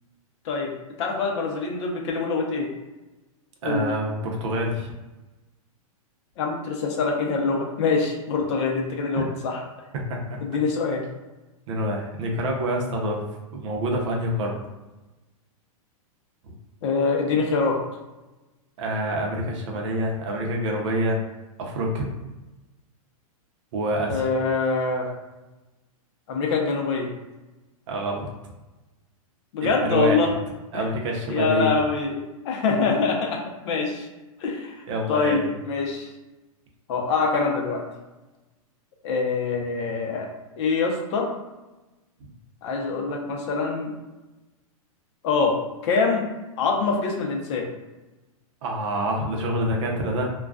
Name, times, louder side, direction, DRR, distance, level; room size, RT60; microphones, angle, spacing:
voice 1, 1.0-2.7 3.6-3.8 6.4-9.6 10.4-11.0 16.8-17.8 24.1-25.1 26.3-27.1 29.5-30.3 30.7-30.8 31.3-33.4 33.6-34.1 34.4-34.8 35.1-36.1 36.9-37.8 39.0-40.3 40.6-41.3 42.6-43.9 45.2-46.3 46.6-47.7, left 4 dB, 50° left, 1 dB, 0.6 m, -24 dB
voice 2, 3.6-4.9 9.2-9.3 9.9-10.2 11.7-13.2 13.5-14.6 18.8-21.2 21.6-22.1 23.7-24.3 27.9-28.3 29.6-30.3 30.7-31.7 34.9-35.5 48.6-50.3, right 1 dB, 55° right, 0 dB, 0.6 m, -26 dB
2.3 x 2.2 x 2.3 m, 1.1 s
hypercardioid pair, 135°, 19 cm